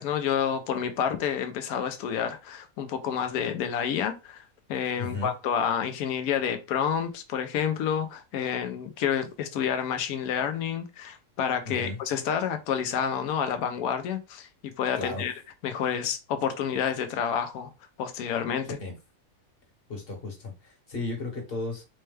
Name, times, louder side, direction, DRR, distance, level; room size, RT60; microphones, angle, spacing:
voice 1, 0.0-14.5 14.8-15.3 15.6-17.7 18.0-18.8, left 8 dB, 75° left, 1.1 m, -29 dB
voice 2, 5.0-5.3 11.6-12.0 15.0-15.3 18.8-18.9 19.9-21.8, left 3 dB, 40° left, 1.2 m, -34 dB
4.3 x 2.2 x 3.2 m
omnidirectional pair, 1.6 m